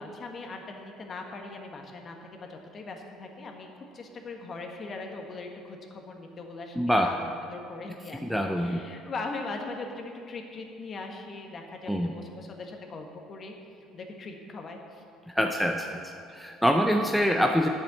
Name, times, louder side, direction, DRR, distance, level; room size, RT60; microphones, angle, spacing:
voice 1, 0.0-6.8 7.0-7.2 7.5-13.5 13.9-15.0, left 3 dB, 40° left, 2 dB, 1.5 m, -40 dB
voice 2, 6.8-7.1 8.1-8.8 11.9-12.1 15.3-17.7, equal, ahead, 2 dB, 0.6 m, -25 dB
9.4 x 7.4 x 6.9 m, 2.4 s
supercardioid pair, 100°, 0 cm